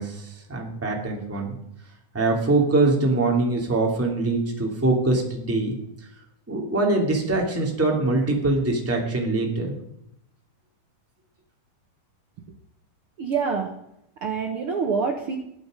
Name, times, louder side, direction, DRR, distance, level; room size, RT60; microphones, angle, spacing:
voice 1, 0.0-1.6 2.1-5.8 6.5-9.8, right 2 dB, 5° right, -1 dB, 2.2 m, -23 dB
voice 2, 13.2-13.7 14.2-15.4, right 5 dB, 75° right, 3 dB, 1.2 m, -26 dB
21.0 x 9.3 x 5.2 m, 0.79 s
omnidirectional pair, 4.4 m